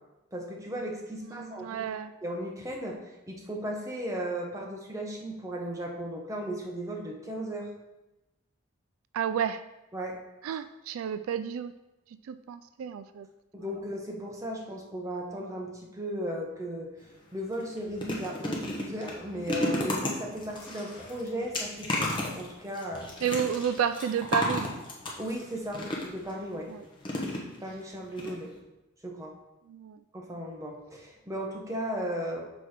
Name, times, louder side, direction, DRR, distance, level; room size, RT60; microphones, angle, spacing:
voice 1, 0.3-1.9 2.2-3.0 3.3-7.7 9.9-10.2 13.5-16.9 17.3-23.1 25.2-26.7 27.6-28.5 29.0-29.3 30.1-32.4, equal, 15° right, -1 dB, 1.0 m, -36 dB
voice 2, 1.3-2.1 9.1-9.6 10.4-11.7 12.3-13.3 23.2-24.7 26.7-26.8 28.2-28.3 29.7-30.0, right 8 dB, 80° right, 13 dB, 0.3 m, -31 dB
sound 1, 17.0-17.1 17.5-26.3 27.0-27.8 28.2-28.3 28.6-28.7, left 1 dB, 25° left, 1.0 m, -33 dB
6.2 x 4.3 x 5.0 m, 0.99 s
head